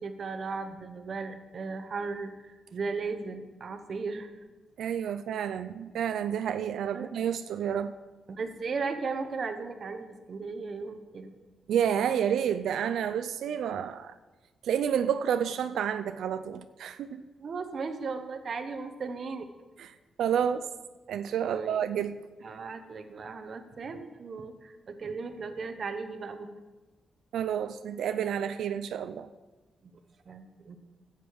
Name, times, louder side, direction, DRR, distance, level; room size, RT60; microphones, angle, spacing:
voice 1, 0.0-4.3 6.9-7.1 8.3-11.3 17.4-19.5 21.5-21.8 22.4-26.5 29.8-29.9 30.3-30.8, right 4 dB, 40° right, 7 dB, 0.9 m, -36 dB
voice 2, 4.8-7.9 11.7-14.1 14.6-17.3 19.8-19.9 20.2-20.7 21.1-22.2 27.3-29.3, right 8 dB, 85° right, 10 dB, 0.5 m, -30 dB
15.5 x 8.3 x 4.7 m, 1.2 s
wide cardioid pair, 175°, 0 cm